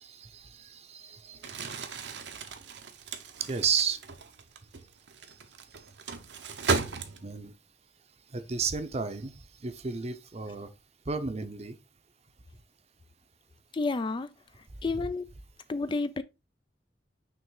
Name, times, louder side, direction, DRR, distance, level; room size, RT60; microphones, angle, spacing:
voice 1, 0.0-1.8 3.5-4.0 7.2-7.5 8.3-9.3 9.6-10.7 11.1-11.8, right 6 dB, 35° right, 0.7 m, -33 dB
Crumpling crinkling, 1.3-7.5, right 4 dB, 80° right, 0.9 m, -35 dB
voice 2, 13.7-14.3 14.8-15.3 15.7-16.2, left 3 dB, 30° left, 0.4 m, -30 dB
6.1 x 3.2 x 4.8 m
head